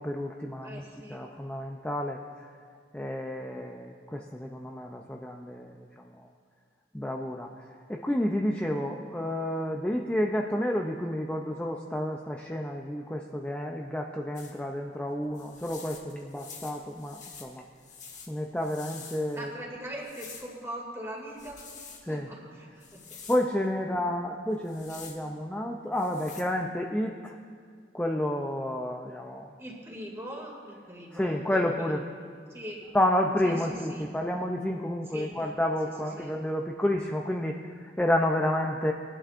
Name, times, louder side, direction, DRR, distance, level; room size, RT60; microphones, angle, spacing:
voice 1, 0.0-0.8 1.1-2.5 2.9-6.1 6.9-7.6 7.9-17.6 18.3-19.5 22.0-22.3 23.3-27.4 27.9-29.5 31.1-32.0 32.9-38.9, left 1 dB, 10° left, 1 dB, 0.5 m, -30 dB
voice 2, 0.6-1.2 19.3-23.0 29.6-32.0 32.5-32.8 33.4-34.0 35.1-35.5 36.2-36.4, equal, 15° right, -2 dB, 2.4 m, -41 dB
sound 1, 14.4-14.6 15.4-19.5 20.0-20.6 21.3-22.0 22.8-23.5 24.5-25.2 26.0-26.4, left 5 dB, 40° left, 1.5 m, -47 dB
21.5 x 11.0 x 2.5 m, 2.1 s
head